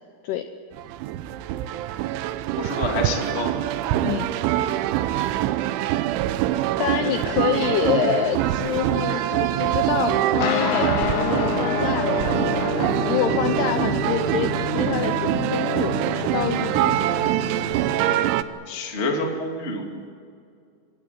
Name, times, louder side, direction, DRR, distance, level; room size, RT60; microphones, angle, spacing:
sound 1, 0.7-18.4, right 13 dB, 80° right, 3.0 m, -24 dB
voice 1, 2.6-3.5 18.7-20.1, left 2 dB, 35° left, 1 dB, 1.0 m, -28 dB
voice 2, 6.8-17.0, left 10 dB, 85° left, 8 dB, 2.3 m, -27 dB
sound 2, 10.4-18.2, left 6 dB, 70° left, 3.6 m, -29 dB
25.0 x 17.5 x 9.4 m, 2.3 s
omnidirectional pair, 5.9 m